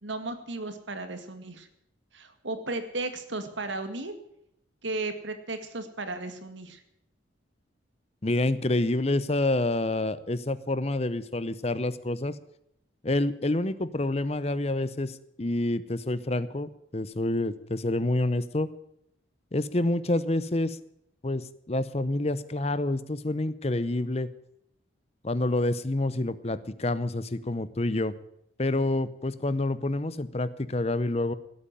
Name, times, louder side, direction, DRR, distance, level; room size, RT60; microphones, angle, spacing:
voice 1, 0.0-1.7 2.1-4.1 4.8-6.8, right 2 dB, 75° right, 9 dB, 2.1 m, -35 dB
voice 2, 8.2-12.4 13.0-18.7 19.5-20.8 21.2-24.3 25.2-28.1 28.6-31.3, left 2 dB, 30° left, 15 dB, 0.7 m, -28 dB
17.5 x 8.5 x 9.0 m, 0.77 s
head